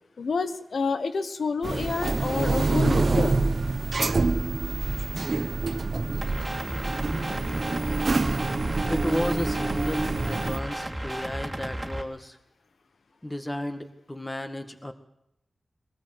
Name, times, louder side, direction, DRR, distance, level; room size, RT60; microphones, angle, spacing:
voice 1, 0.2-3.4, left 4 dB, 80° left, 11 dB, 1.2 m, -29 dB
sound 1, 1.6-10.6, right 3 dB, 50° right, 1.1 m, -26 dB
sound 2, 6.2-12.0, right 1 dB, 15° right, 2.6 m, -34 dB
voice 2, 8.9-12.4 13.2-14.9, left 1 dB, 15° left, 7 dB, 1.8 m, -33 dB
22.0 x 18.5 x 8.0 m, 0.81 s
wide cardioid pair, 110°, 0 cm